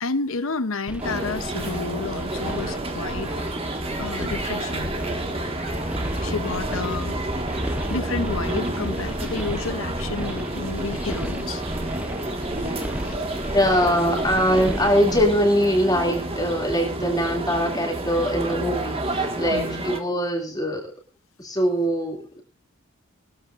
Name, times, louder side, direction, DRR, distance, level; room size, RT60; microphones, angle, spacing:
voice 1, 0.0-3.3 3.6-4.9 6.2-7.2 7.9-11.7 13.0-13.2 19.5-19.8, left 3 dB, 70° left, 1.0 m, -30 dB
sound 1, 0.9-15.3, equal, 5° right, 0.9 m, -35 dB
sound 2, 1.0-20.0, right 1 dB, 25° right, 2.0 m, -29 dB
voice 2, 5.3-6.3 13.5-20.9 21.4-22.4, equal, 20° left, 2.9 m, -23 dB
20.5 x 14.0 x 2.7 m
head